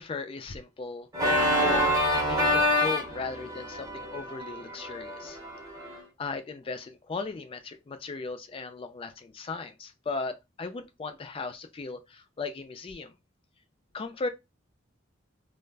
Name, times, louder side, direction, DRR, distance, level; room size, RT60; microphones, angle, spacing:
voice 1, 0.0-5.4 5.9-13.1 13.9-14.3, left 4 dB, 30° left, 0.3 m, -37 dB
Organ, 1.1-6.0, left 1 dB, 15° right, 0.6 m, -27 dB
2.3 x 2.0 x 3.3 m
head